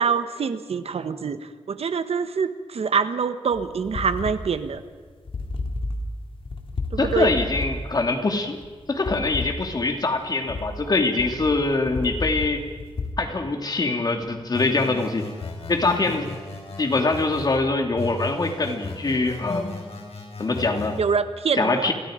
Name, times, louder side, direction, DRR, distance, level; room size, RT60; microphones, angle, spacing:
voice 1, 0.0-4.8 6.9-7.3 21.0-21.9, right 6 dB, 75° right, 11 dB, 1.2 m, -25 dB
sound 1, 3.5-13.1, left 2 dB, 60° left, 2.4 m, -32 dB
voice 2, 7.0-8.6 8.9-12.6 13.2-15.3 15.7-16.3 16.8-19.8 20.4-21.0 21.6-21.9, left 3 dB, 40° left, 5 dB, 2.6 m, -23 dB
sound 2, 14.5-17.6 18.0-21.0, left 3 dB, 75° left, 5.3 m, -35 dB
29.0 x 23.0 x 5.1 m, 1.5 s
wide cardioid pair, 165°, 10 cm